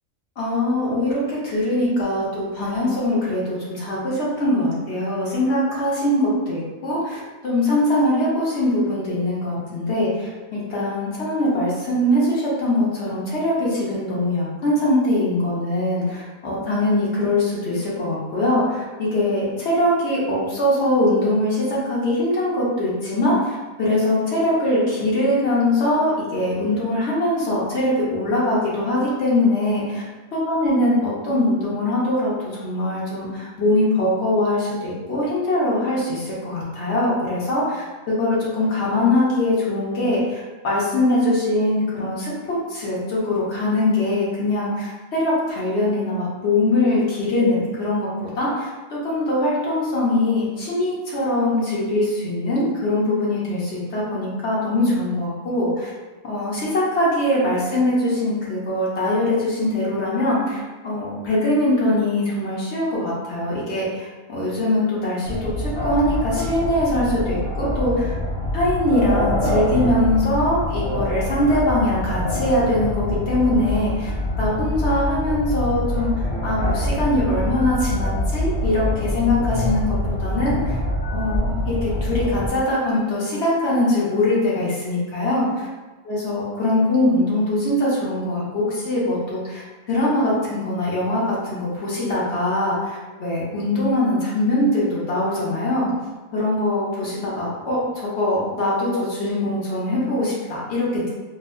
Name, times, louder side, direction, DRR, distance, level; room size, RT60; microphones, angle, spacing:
voice 1, 0.4-30.0 30.3-40.4 40.6-55.9 56.2-68.1 68.5-74.1 74.4-80.8 81.1-85.5 86.1-89.6 89.9-95.9 96.3-101.1, left 1 dB, 55° left, -7 dB, 1.2 m, -22 dB
sound 1, 65.3-82.5, left 1 dB, 30° left, 0.9 m, -25 dB
4.5 x 2.0 x 2.5 m, 1.2 s
omnidirectional pair, 1.4 m